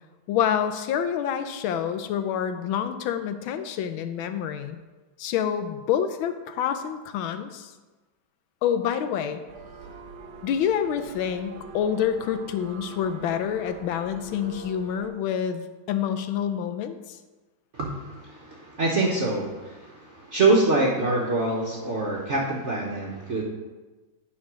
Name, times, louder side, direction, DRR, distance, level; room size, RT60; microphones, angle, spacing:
voice 1, 0.3-4.8 5.2-7.7 8.6-9.4 10.4-17.2, left 8 dB, 90° left, 9 dB, 1.5 m, -27 dB
sound 1, 9.5-15.1, right 4 dB, 90° right, 1.6 m, -43 dB
voice 2, 17.7-23.4, right 2 dB, 45° right, -2 dB, 1.0 m, -25 dB
9.5 x 3.8 x 6.1 m, 1.2 s
omnidirectional pair, 2.1 m